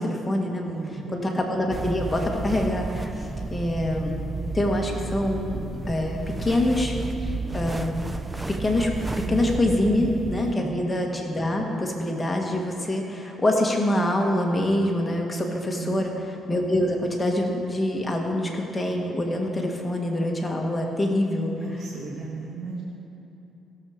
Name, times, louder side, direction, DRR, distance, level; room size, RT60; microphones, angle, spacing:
voice 1, 0.0-0.8 1.1-4.2 4.5-5.6 5.9-7.0 7.5-7.9 8.5-8.9 9.3-16.1 16.5-21.5, left 1 dB, 15° left, 0 dB, 1.6 m, -25 dB
voice 2, 0.6-1.2 9.1-9.4 10.3-10.8 15.8-16.0 21.6-22.8, right 4 dB, 60° right, -3 dB, 1.5 m, -36 dB
sound 1, 1.7-10.5, right 3 dB, 15° right, 0.5 m, -32 dB
16.5 x 7.2 x 5.1 m, 2.9 s
cardioid pair, 100°, 0 cm